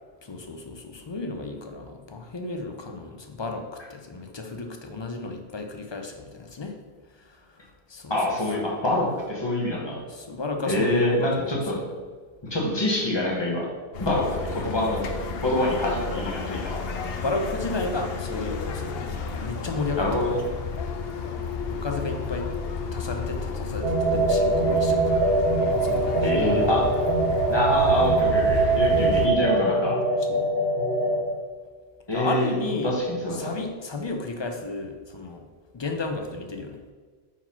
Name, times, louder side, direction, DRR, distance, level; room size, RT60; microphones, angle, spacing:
voice 1, 0.2-6.7 7.9-8.1 10.1-11.4 17.2-19.1 19.4-20.1 21.5-22.5 22.9-25.1 25.8-26.3 30.3-30.5 32.1-32.9 33.4-35.4 35.7-36.8, left 3 dB, 40° left, 4 dB, 0.4 m, -32 dB
voice 2, 8.1-10.0 10.7-11.8 12.5-13.7 14.0-15.1 15.4-16.8 20.0-20.5 26.2-26.9 27.5-30.0 32.1-33.5, left 1 dB, 25° left, -3 dB, 1.3 m, -25 dB
sound 1, 13.9-29.3, left 5 dB, 65° left, 0.8 m, -32 dB
sound 2, 23.8-31.2, right 3 dB, 70° right, 1.3 m, -23 dB
4.6 x 3.9 x 5.7 m, 1.5 s
omnidirectional pair, 1.1 m